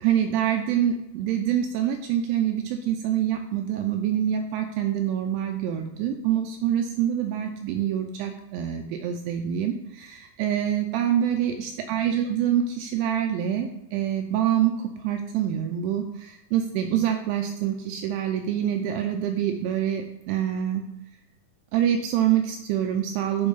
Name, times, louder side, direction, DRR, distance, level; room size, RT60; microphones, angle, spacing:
voice 1, 0.0-20.9 21.7-23.5, right 10 dB, 85° right, 4 dB, 2.5 m, -26 dB
10.5 x 3.6 x 4.0 m, 0.91 s
omnidirectional pair, 4.9 m